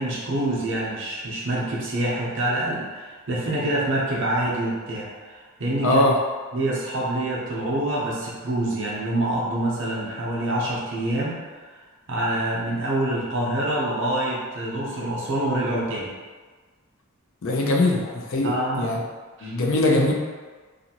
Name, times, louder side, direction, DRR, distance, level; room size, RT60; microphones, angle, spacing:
voice 1, 0.0-6.0 6.5-11.4 12.1-16.1 18.4-18.9 19.4-19.5, right 1 dB, 60° right, -5 dB, 0.7 m, -26 dB
voice 2, 5.8-6.2 17.4-19.0 19.4-20.1, left 2 dB, 60° left, 0 dB, 0.5 m, -21 dB
2.6 x 2.5 x 2.8 m, 1.4 s
head